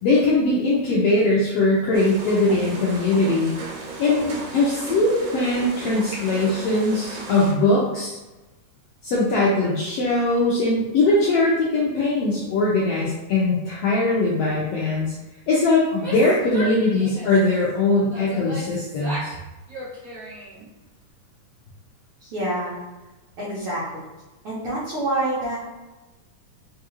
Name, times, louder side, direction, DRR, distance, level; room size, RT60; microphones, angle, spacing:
voice 1, 0.0-3.5 4.0-8.2 9.0-15.1 15.5-19.3, left 2 dB, 80° left, -5 dB, 1.4 m, -21 dB
sound 1, 1.9-7.5, right 4 dB, 85° right, 2.1 m, -35 dB
voice 2, 15.6-16.0 22.2-22.8 23.4-24.0 24.4-25.6, right 1 dB, 70° right, -9 dB, 1.3 m, -27 dB
Female speech woman speaking / Yell, 15.9-17.5 18.1-19.4 19.7-20.7, equal, 30° right, 1.2 m, -35 dB
4.6 x 2.3 x 2.9 m, 1.1 s
omnidirectional pair, 3.4 m